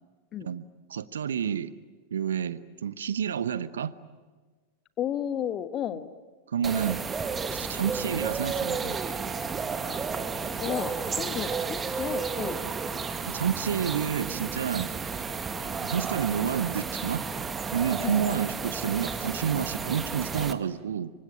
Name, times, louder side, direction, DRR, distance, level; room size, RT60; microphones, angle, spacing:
voice 1, 0.9-1.7 2.1-3.9 6.5-7.0 7.5-9.0 12.6-12.7 13.3-14.9 15.7-17.2 17.7-21.1, right 8 dB, 65° right, 17 dB, 0.9 m, -29 dB
voice 2, 5.0-6.1 9.8-10.0 10.6-12.6 18.0-18.2, left 10 dB, 30° left, 13 dB, 1.4 m, -33 dB
sound 1, 6.6-20.5, right 5 dB, 15° right, 1.6 m, -32 dB
26.0 x 25.0 x 9.0 m, 1.4 s
figure-of-eight pair, 90°, 0 cm